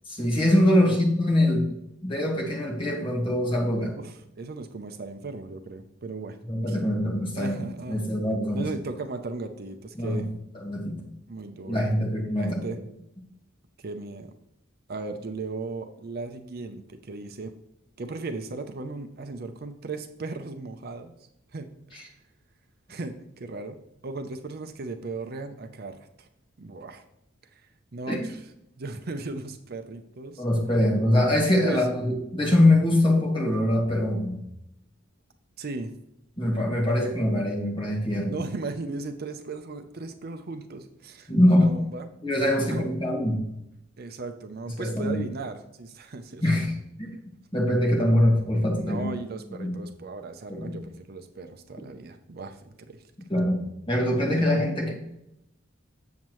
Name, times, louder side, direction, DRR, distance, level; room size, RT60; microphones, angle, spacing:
voice 1, 0.1-1.7 2.0-4.0 6.5-8.7 10.0-10.2 10.6-11.0 11.6-12.8 21.9-22.0 28.1-28.2 30.4-34.4 36.4-38.4 41.3-41.7 42.2-43.4 44.7-45.2 46.4-46.7 47.0-47.2 47.5-49.1 49.6-49.8 50.5-50.8 53.3-54.9, left 1 dB, 25° left, -1 dB, 1.9 m, -23 dB
voice 2, 3.9-6.4 6.7-6.8 7.4-8.1 8.5-10.3 11.3-11.9 12.3-12.8 13.8-14.3 14.9-17.5 18.0-21.1 21.5-22.1 22.9-26.3 26.6-27.0 27.5-27.6 27.9-28.4 28.8-30.4 31.6-31.9 35.6-35.9 38.2-42.1 42.5-42.9 44.0-46.5 48.8-53.0, right 3 dB, 50° right, 7 dB, 0.6 m, -37 dB
7.4 x 7.2 x 3.1 m, 0.82 s
head